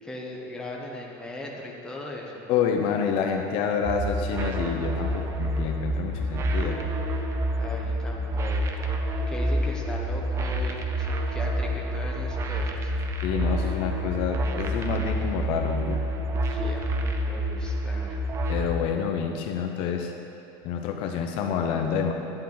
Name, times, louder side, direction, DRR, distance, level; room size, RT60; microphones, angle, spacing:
voice 1, 0.0-2.5 7.6-12.9 16.5-18.3, left 1 dB, 5° left, -1 dB, 1.0 m, -39 dB
voice 2, 2.5-6.8 13.2-16.0 18.5-20.1 20.6-22.1, left 7 dB, 50° left, 4 dB, 0.8 m, -28 dB
sound 1, 3.9-18.7, right 1 dB, 25° right, 0.7 m, -28 dB
11.0 x 10.0 x 3.9 m, 2.8 s
supercardioid pair, 155°, 12 cm